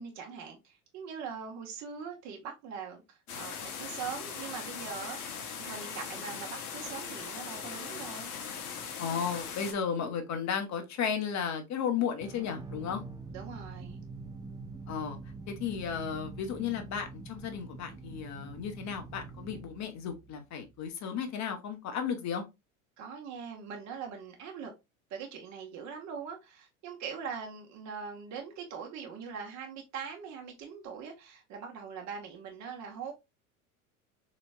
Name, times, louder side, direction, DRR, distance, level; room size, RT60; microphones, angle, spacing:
voice 1, 0.0-8.3 13.3-14.0 23.0-24.7 25.1-33.1, right 6 dB, 40° right, 1.0 m, -42 dB
sound 1, 3.3-9.7, left 6 dB, 75° left, 0.9 m, -40 dB
voice 2, 9.0-13.0 14.9-15.2 15.5-22.4, left 7 dB, 40° left, 1.0 m, -34 dB
sound 2, 12.2-20.9, right 3 dB, 10° right, 0.5 m, -45 dB
4.0 x 3.0 x 2.3 m
figure-of-eight pair, 75°, 44 cm